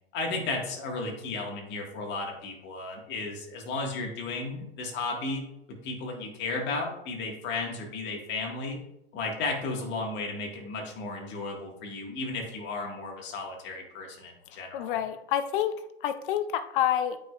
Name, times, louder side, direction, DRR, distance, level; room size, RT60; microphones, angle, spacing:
voice 1, 0.1-5.4 5.8-8.8 9.1-15.0, left 3 dB, 35° left, 0 dB, 1.8 m, -34 dB
voice 2, 14.7-17.2, left 10 dB, 55° left, 11 dB, 0.7 m, -28 dB
8.9 x 5.1 x 2.4 m, 0.83 s
hypercardioid pair, 125°, 32 cm